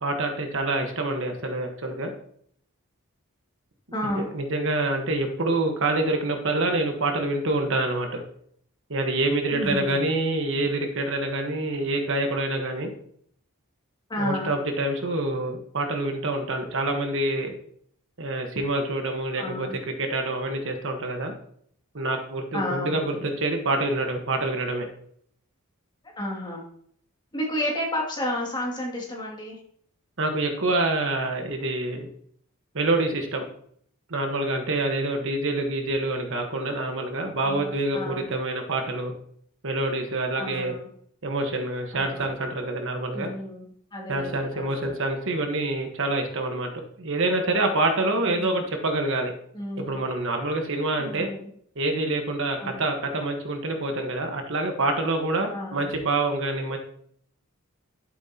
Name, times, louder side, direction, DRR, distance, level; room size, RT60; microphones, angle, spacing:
voice 1, 0.0-2.1 4.1-8.2 8.9-12.9 14.2-17.5 18.2-21.3 21.9-24.9 30.2-32.1 32.7-33.5 34.1-39.1 39.6-40.7 41.2-43.3 44.1-46.7 47.0-49.3 49.8-51.3 51.7-56.8, right 2 dB, 60° right, 4 dB, 1.3 m, -26 dB
voice 2, 3.9-4.3 9.5-9.9 14.1-14.5 19.4-19.8 22.5-23.2 26.2-26.6 27.3-29.6 37.4-38.3 40.4-40.9 41.9-42.3 43.1-43.7 43.9-44.9 48.3-48.6 49.5-50.0 51.0-51.5 52.6-52.8 55.5-55.9, left 1 dB, 20° left, -2 dB, 2.4 m, -32 dB
12.0 x 7.7 x 2.9 m, 0.65 s
head